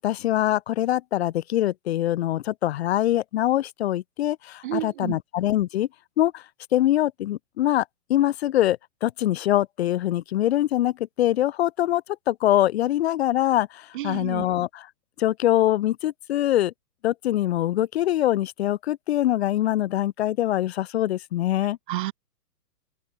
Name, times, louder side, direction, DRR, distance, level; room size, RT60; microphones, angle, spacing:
voice 1, 0.0-5.9 6.2-6.4 6.7-7.8 8.1-14.8 15.2-16.7 17.0-21.8, left 13 dB, 40° left, 1.0 m, -23 dB
voice 2, 4.6-5.2 13.9-14.5 21.9-22.1, right 16 dB, 30° right, 0.9 m, -30 dB
open air
hypercardioid pair, 155°, 48 cm